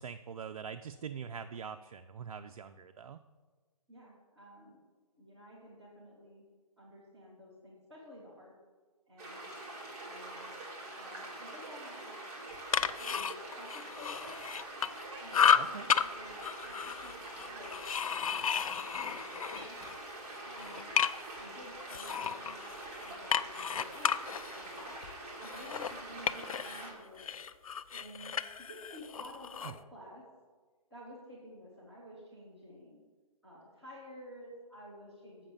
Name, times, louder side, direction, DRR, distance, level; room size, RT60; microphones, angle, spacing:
voice 1, 0.0-3.2 15.5-15.9 29.6-29.7, right 7 dB, 70° right, 9 dB, 0.4 m, -43 dB
voice 2, 3.9-4.8 5.2-6.4 6.8-8.5 9.1-9.5 10.0-10.6 10.9-12.1 13.0-14.4 15.2-17.8 18.1-18.3 18.6-19.8 20.4-20.9 21.4-24.9 25.4-27.4 27.9-30.2 30.9-33.0 33.4-35.5, equal, ahead, -14 dB, 0.3 m, -52 dB
sound 1, 9.2-26.9, right 2 dB, 25° right, 2.3 m, -45 dB
sound 2, 12.5-15.0 15.3-16.0 16.4-20.0 20.3-21.4 21.9-26.9 27.2-29.8, left 7 dB, 65° left, 0.5 m, -33 dB
Cat, 15.1-15.9 16.2-16.4 17.5-18.0 18.7-18.8 19.1-20.2, right 3 dB, 45° right, 1.7 m, -55 dB
7.4 x 5.7 x 6.8 m, 1.4 s
hypercardioid pair, 165°, 19 cm